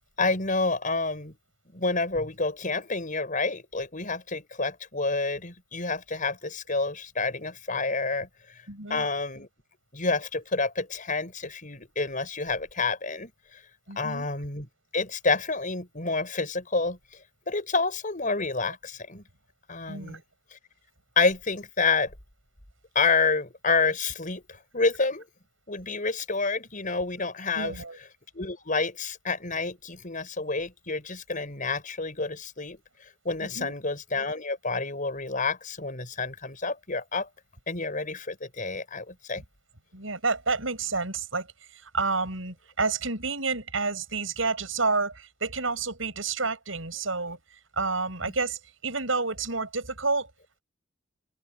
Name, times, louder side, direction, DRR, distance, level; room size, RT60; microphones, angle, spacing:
voice 1, 0.2-1.4 1.7-8.3 8.9-9.5 9.9-13.3 14.0-17.0 17.5-19.2 19.7-20.2 20.5-20.6 21.2-22.1 22.9-25.2 25.7-27.8 28.3-32.8 33.2-37.3 37.7-39.4 48.2-48.3, left 3 dB, 40° left, 6.0 m, -28 dB
voice 2, 8.7-9.0 13.9-14.3 19.9-20.2 27.6-28.0 33.4-33.7 39.9-41.5 41.8-47.4 47.8-50.3, right 4 dB, 75° right, 7.8 m, -29 dB
head